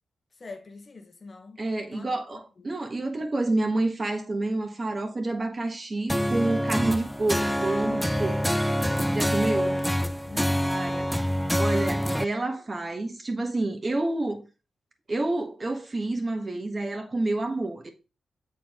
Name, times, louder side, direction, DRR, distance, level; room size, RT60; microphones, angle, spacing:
voice 1, 0.4-1.6 1.9-2.1 2.3-2.8 9.2-9.9 10.3-10.7, left 3 dB, 45° left, 1.1 m, -43 dB
voice 2, 1.6-8.6 9.1-9.8 10.7-11.1 11.6-14.4 15.1-17.9, right 2 dB, 35° right, 1.4 m, -29 dB
sound 1, 6.1-12.2, equal, 5° left, 0.3 m, -26 dB
7.1 x 4.2 x 3.7 m
cardioid pair, 70°, 0 cm